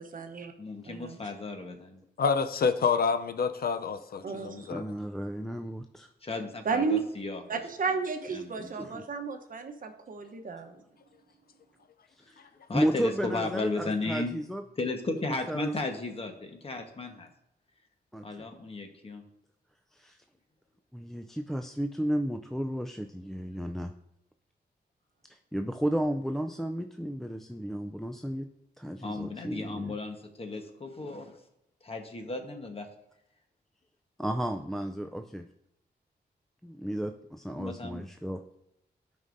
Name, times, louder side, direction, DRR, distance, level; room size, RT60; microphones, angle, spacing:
voice 1, 0.0-0.5 0.9-1.2 4.2-4.7 6.6-7.0 7.5-10.8, right 5 dB, 55° right, 6 dB, 0.9 m, -33 dB
voice 2, 0.6-2.0 6.2-7.6 8.3-8.7 12.7-14.4 14.8-17.3 18.2-19.2 29.0-31.4 31.8-32.9 37.6-38.1, left 3 dB, 35° left, 4 dB, 1.1 m, -35 dB
voice 3, 2.2-4.8, left 5 dB, 60° left, 9 dB, 0.5 m, -27 dB
voice 4, 4.7-6.1 8.8-9.0 12.1-12.4 12.7-14.6 15.5-15.7 18.1-18.5 19.9-20.2 20.9-23.9 25.3-28.5 28.8-30.0 34.2-35.4 36.6-38.4, equal, ahead, 5 dB, 0.4 m, -33 dB
12.5 x 5.4 x 2.6 m, 0.81 s
wide cardioid pair, 100°, 17 cm